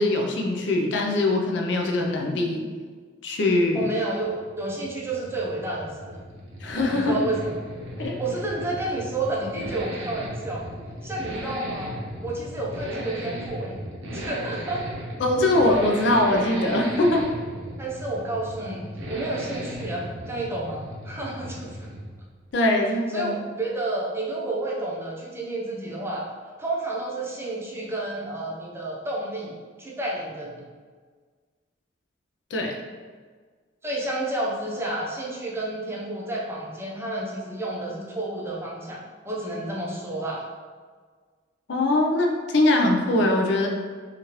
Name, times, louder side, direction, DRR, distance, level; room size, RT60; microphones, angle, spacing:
voice 1, 0.0-2.6 3.2-3.9 6.6-7.1 8.0-8.2 15.2-17.3 22.5-23.3 32.5-32.8 41.7-43.7, left 2 dB, 65° left, 2 dB, 0.4 m, -22 dB
voice 2, 3.7-6.2 6.9-7.5 8.2-10.7 11.0-11.9 12.2-13.8 14.1-14.8 17.8-21.9 23.1-26.3 26.6-29.5 29.8-30.6 33.8-39.0 39.2-40.4, right 2 dB, 15° right, -4 dB, 0.5 m, -30 dB
Accelerating revving vroom, 4.1-22.2 22.5-22.6, equal, 70° right, 0.6 m, -36 dB
3.0 x 2.4 x 2.9 m, 1.6 s
head